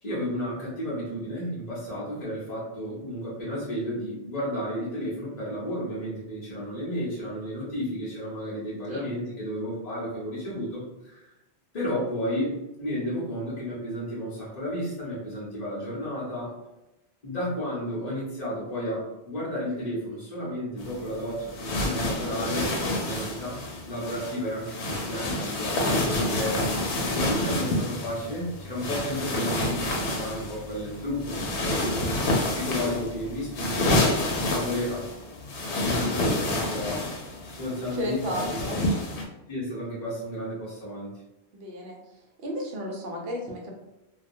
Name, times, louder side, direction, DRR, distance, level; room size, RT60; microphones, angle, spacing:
voice 1, 0.0-11.3 11.7-12.5 12.8-16.6 17.2-22.7 23.0-32.0 32.5-34.1 34.5-35.1 35.6-37.1 37.4-38.8 39.5-41.1, equal, 45° left, -7 dB, 0.8 m, -32 dB
sound 1, 20.8-39.2, left 1 dB, 85° left, 0.9 m, -29 dB
voice 2, 38.0-38.8 41.5-42.0 42.4-43.7, equal, 65° right, 0 dB, 0.8 m, -33 dB
2.3 x 2.2 x 2.6 m, 0.95 s
omnidirectional pair, 1.1 m